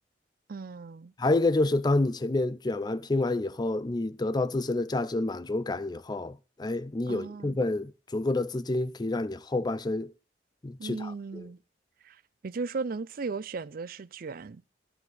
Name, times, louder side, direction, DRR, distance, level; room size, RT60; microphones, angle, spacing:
voice 1, 0.5-1.1 7.1-7.6 10.8-11.6 12.0-14.6, right 4 dB, 55° right, 0.5 m, -36 dB
voice 2, 1.2-10.1 10.6-11.5, left 2 dB, 25° left, 0.4 m, -28 dB
12.5 x 5.0 x 7.9 m
head